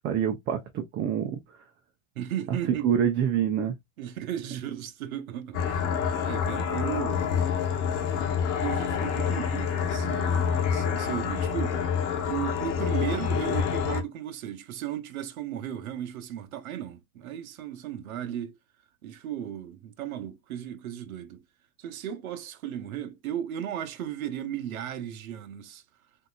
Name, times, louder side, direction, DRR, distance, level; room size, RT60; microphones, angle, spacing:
voice 1, 0.0-1.4 2.8-3.7, right 9 dB, 30° right, 0.6 m, -26 dB
voice 2, 2.2-3.0 4.0-5.9 6.2-7.4 8.6-18.6 19.0-21.4 21.8-25.8, right 10 dB, 90° right, 0.8 m, -35 dB
sound 1, 5.5-14.0, left 7 dB, 60° left, 1.1 m, -27 dB
3.8 x 2.7 x 2.3 m
supercardioid pair, 125°, 41 cm